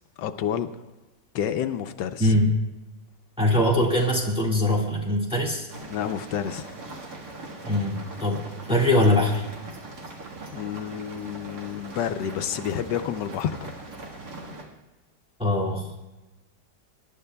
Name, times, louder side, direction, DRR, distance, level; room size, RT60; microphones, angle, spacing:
voice 1, 0.2-0.7 1.3-2.3 5.9-6.7 10.5-13.7, left 9 dB, 80° left, 8 dB, 1.3 m, -29 dB
voice 2, 2.2-2.5 3.4-5.7 7.6-8.4 8.7-9.4 15.4-15.9, left 1 dB, 5° right, -2 dB, 1.7 m, -22 dB
sound 1, 5.7-14.6, right 2 dB, 60° right, 2.1 m, -41 dB
25.0 x 11.0 x 2.2 m, 1.1 s
omnidirectional pair, 1.9 m